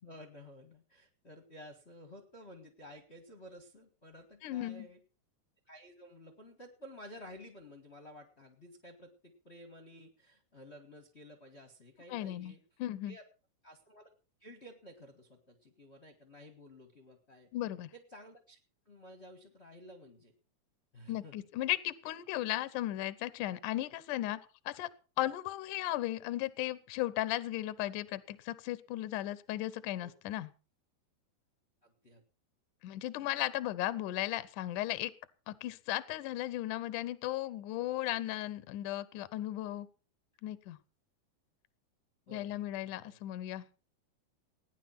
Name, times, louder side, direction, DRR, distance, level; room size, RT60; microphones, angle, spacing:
voice 1, 0.0-5.0 5.7-12.6 13.1-13.2 13.6-14.1 14.4-17.5 17.9-18.6 18.8-20.3 20.9-21.4 28.1-28.2 30.0-30.1 31.8-32.2 42.3-43.2, equal, 40° left, 4 dB, 0.9 m, -53 dB
voice 2, 4.4-4.9 12.1-12.5 12.8-13.2 17.5-17.9 21.1-24.4 24.7-24.9 25.2-30.5 32.8-35.1 35.5-39.9 40.4-40.8 42.3-43.6, left 15 dB, 75° left, 17 dB, 2.0 m, -36 dB
17.5 x 10.0 x 5.8 m, 0.36 s
omnidirectional pair, 4.6 m